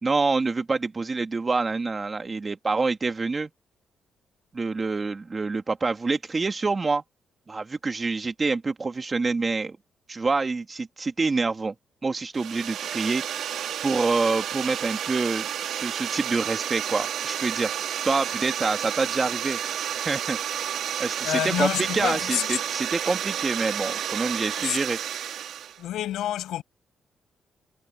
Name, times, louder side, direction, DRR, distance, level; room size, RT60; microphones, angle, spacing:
voice 1, 0.0-3.5 4.5-7.0 7.5-9.8 10.1-11.7 12.0-15.5 15.7-17.7 18.0-19.6 19.9-20.4 21.0-25.0, right 3 dB, 30° right, 2.4 m, -27 dB
sound 1, 12.3-25.8, right 10 dB, 80° right, 2.9 m, -31 dB
voice 2, 21.2-22.6 24.6-24.8 25.8-26.6, left 12 dB, 90° left, 7.3 m, -28 dB
cardioid pair, 95°, 0 cm